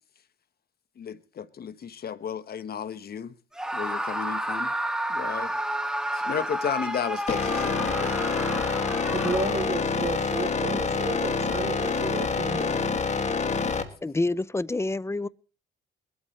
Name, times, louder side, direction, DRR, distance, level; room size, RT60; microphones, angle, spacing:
voice 1, 1.0-3.3 3.7-4.7 5.1-5.5 6.1-8.2, left 8 dB, 50° left, 1.1 m, -33 dB
Screaming, 3.5-9.8, right 1 dB, 5° right, 2.1 m, -31 dB
sound 1, 7.3-13.8, left 4 dB, 35° left, 2.2 m, -27 dB
voice 2, 9.1-12.7, right 3 dB, 30° right, 4.0 m, -32 dB
voice 3, 14.0-15.3, left 2 dB, 15° left, 0.6 m, -27 dB
22.0 x 13.0 x 3.2 m
cardioid pair, 90°, 20 cm